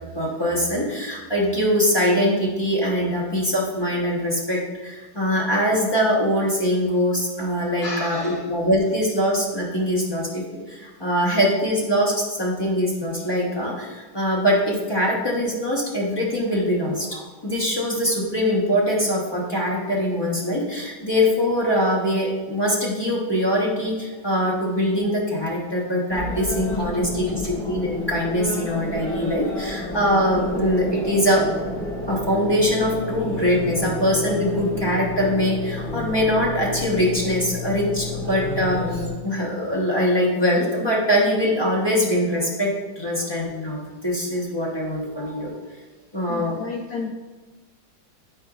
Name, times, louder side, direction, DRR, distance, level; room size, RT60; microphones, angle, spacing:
voice 1, 0.1-31.4 32.1-45.5 46.1-46.6, equal, 40° left, -5 dB, 0.3 m, -23 dB
voice 2, 7.8-8.4 26.8-26.9 27.3-27.5 46.3-47.1, left 4 dB, 85° left, 1 dB, 0.8 m, -32 dB
sound 1, 26.1-39.1, left 2 dB, ahead, 1.8 m, -31 dB
9.7 x 4.8 x 2.4 m, 1.3 s
omnidirectional pair, 2.2 m